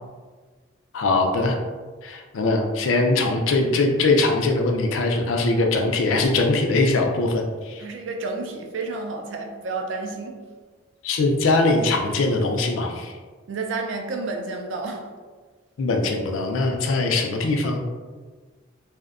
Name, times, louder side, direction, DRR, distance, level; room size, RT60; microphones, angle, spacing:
voice 1, 0.9-1.6 2.0-7.8 11.0-13.2 15.8-17.8, left 2 dB, 85° left, 3 dB, 0.4 m, -21 dB
voice 2, 7.8-10.4 13.5-15.1, right 3 dB, 70° right, 3 dB, 0.4 m, -30 dB
2.6 x 2.1 x 2.4 m, 1.4 s
head